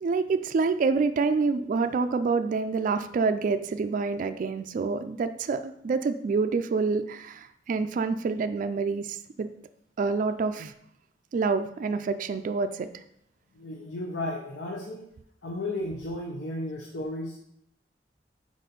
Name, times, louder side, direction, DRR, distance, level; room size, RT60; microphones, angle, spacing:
voice 1, 0.0-9.5 10.0-10.7 11.3-12.9, right 4 dB, 50° right, 9 dB, 0.3 m, -27 dB
voice 2, 13.5-15.1 15.4-17.4, left 1 dB, 80° left, -1 dB, 0.8 m, -34 dB
4.9 x 4.2 x 5.2 m, 0.74 s
head